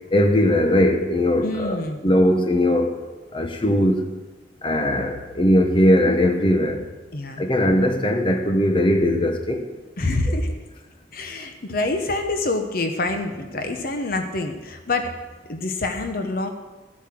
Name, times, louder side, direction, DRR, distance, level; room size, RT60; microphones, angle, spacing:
voice 1, 0.1-2.9 3.3-4.1 4.6-6.8 7.4-9.7, left 1 dB, 30° left, 5 dB, 1.1 m, -19 dB
voice 2, 1.4-2.0 7.1-7.4 10.0-10.5 11.1-15.1 15.5-16.5, left 2 dB, 55° left, 6 dB, 1.0 m, -26 dB
13.5 x 8.5 x 6.1 m, 1.2 s
head